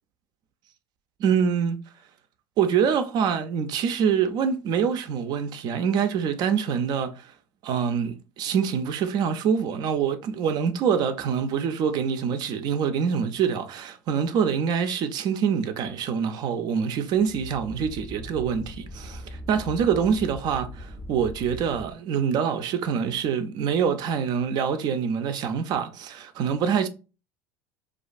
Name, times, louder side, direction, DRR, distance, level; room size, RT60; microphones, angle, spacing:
voice 1, 1.2-1.8 2.6-7.3 7.6-26.9, right 7 dB, 50° right, 0.3 m, -25 dB
sound 1, 17.1-21.9, equal, 15° left, 0.5 m, -41 dB
2.3 x 2.2 x 2.4 m
hypercardioid pair, 80°, 9 cm